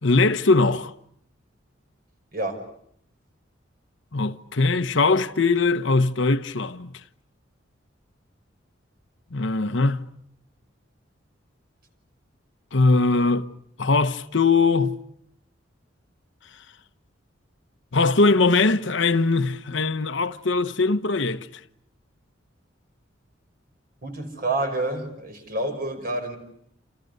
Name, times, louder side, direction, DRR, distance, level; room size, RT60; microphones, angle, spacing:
voice 1, 0.0-0.9 4.1-6.9 9.3-10.1 12.7-13.5 13.8-15.0 17.9-21.5, left 3 dB, 70° left, 1.1 m, -21 dB
voice 2, 2.3-2.7 24.0-26.4, right 2 dB, 50° right, 5.5 m, -28 dB
29.0 x 29.0 x 6.7 m
head